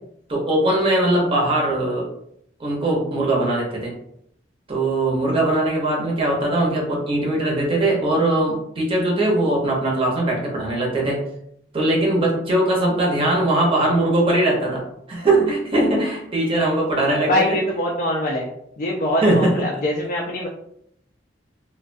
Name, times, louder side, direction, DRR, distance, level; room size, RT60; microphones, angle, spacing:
voice 1, 0.3-2.1 2.6-3.9 4.7-11.2 11.7-14.8 15.1-17.6 19.2-19.7, right 1 dB, 30° right, -2 dB, 0.7 m, -20 dB
voice 2, 17.3-18.5 18.8-20.5, left 1 dB, 45° left, -1 dB, 0.3 m, -23 dB
2.3 x 2.2 x 2.4 m, 0.73 s
head